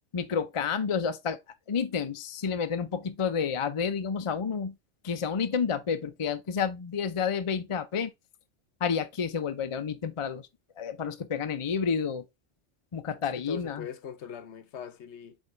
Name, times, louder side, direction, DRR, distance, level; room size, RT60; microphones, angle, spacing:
voice 1, 0.1-1.4 1.7-4.7 5.0-8.1 8.8-10.5 10.8-12.2 12.9-13.9, left 6 dB, 35° left, 0.5 m, -30 dB
voice 2, 13.3-15.4, left 8 dB, 70° left, 1.0 m, -41 dB
8.3 x 3.6 x 3.2 m
omnidirectional pair, 1.2 m